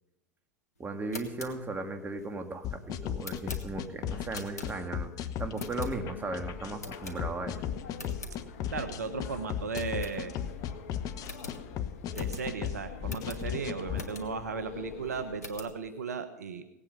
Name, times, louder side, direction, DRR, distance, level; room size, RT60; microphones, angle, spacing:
voice 1, 0.8-7.6, right 3 dB, 20° right, 5 dB, 2.3 m, -37 dB
sound 1, 0.9-5.1 5.5-6.3 6.8-7.6 7.9-8.4 8.8-8.9 9.2-9.3 9.7-10.6 10.9-11.0 11.2-14.5 15.0-15.8, left 2 dB, 90° left, 1.9 m, -45 dB
sound 2, 2.6-14.0, left 9 dB, 45° left, 1.1 m, -36 dB
sound 3, 5.7-15.4, left 6 dB, 65° left, 1.4 m, -46 dB
voice 2, 8.7-10.3 12.1-16.6, right 5 dB, 85° right, 9 dB, 1.2 m, -36 dB
18.0 x 8.9 x 5.4 m, 0.89 s
hypercardioid pair, 85°, 8 cm